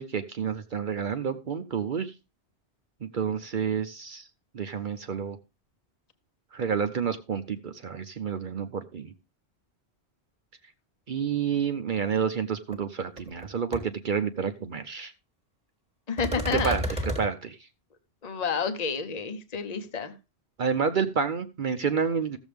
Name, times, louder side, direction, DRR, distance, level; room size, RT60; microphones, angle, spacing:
voice 1, 0.0-2.1 3.0-4.2 4.5-5.4 6.5-9.1 11.1-15.1 16.5-17.5 20.6-22.4, right 6 dB, 55° right, 8 dB, 0.8 m, -29 dB
sound 1, 12.7-12.8 13.2-13.5 13.7-13.8 16.2-17.3, right 1 dB, 5° right, 1.6 m, -31 dB
voice 2, 16.1-16.8 18.2-20.1, left 5 dB, 40° left, 8 dB, 1.0 m, -30 dB
14.5 x 7.2 x 3.4 m, 0.26 s
omnidirectional pair, 1.1 m